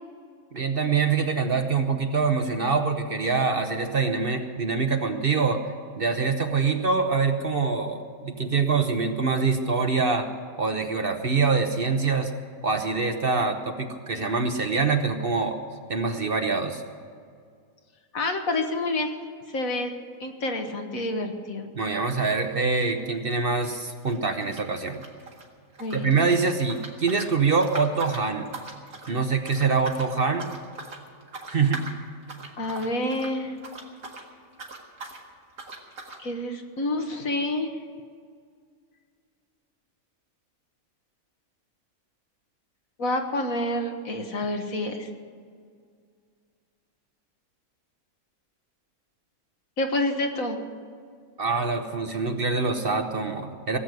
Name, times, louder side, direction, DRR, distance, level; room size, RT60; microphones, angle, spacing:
voice 1, 0.5-5.6 6.0-10.3 10.6-12.4 12.6-15.6 15.9-16.8 21.7-25.0 25.9-28.5 29.1-30.5 31.5-31.9 51.4-53.8, right 4 dB, 45° right, 5 dB, 1.1 m, -25 dB
voice 2, 18.1-19.1 19.5-19.9 20.2-21.6 25.8-26.1 32.6-33.6 36.2-37.7 43.0-45.1 49.8-50.6, left 1 dB, 70° left, 4 dB, 1.9 m, -28 dB
sound 1, 22.4-22.6 22.9-25.4 25.7-34.3 34.5-35.2 35.6-36.2, right 3 dB, 70° right, 2.3 m, -41 dB
18.0 x 8.0 x 9.3 m, 2.1 s
omnidirectional pair, 1.5 m